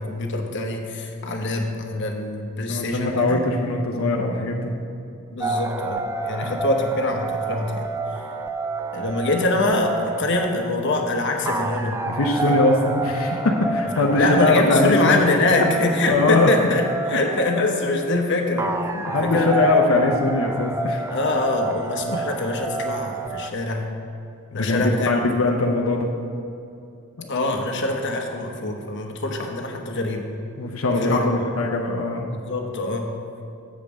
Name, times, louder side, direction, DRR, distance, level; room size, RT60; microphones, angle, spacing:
voice 1, 0.0-3.4 5.3-7.9 8.9-12.1 12.4-12.6 14.0-18.7 19.1-19.6 21.1-23.9 24.5-25.1 27.3-30.2 30.9-31.5 32.3-33.1, left 2 dB, 60° left, 2 dB, 1.0 m, -24 dB
voice 2, 2.7-4.7 6.4-6.6 12.0-15.2 16.1-16.5 18.9-21.0 24.5-26.1 27.2-27.3 30.6-32.3, left 2 dB, 90° left, 1 dB, 0.7 m, -21 dB
sound 1, 5.4-23.5, right 3 dB, 15° right, 0.3 m, -29 dB
7.4 x 5.3 x 7.3 m, 2.7 s
head